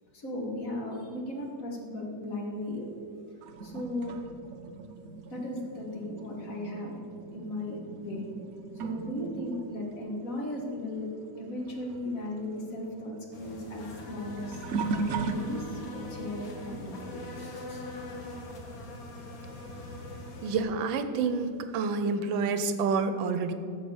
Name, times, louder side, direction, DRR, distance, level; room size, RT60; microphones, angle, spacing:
voice 1, 0.1-2.9 3.6-4.2 5.3-7.0 7.3-8.3 8.8-11.1 11.4-17.8, left 1 dB, 45° left, 0 dB, 2.0 m, -36 dB
sound 1, 3.4-11.4 11.7-16.0 16.6-16.9 19.2-19.3 20.2-20.3, right 4 dB, 60° right, 0.9 m, -38 dB
sound 2, 13.3-20.6, left 1 dB, 85° left, 2.2 m, -42 dB
voice 2, 20.4-23.5, right 4 dB, 90° right, 9 dB, 1.5 m, -28 dB
14.0 x 5.0 x 7.1 m, 2.4 s
omnidirectional pair, 2.1 m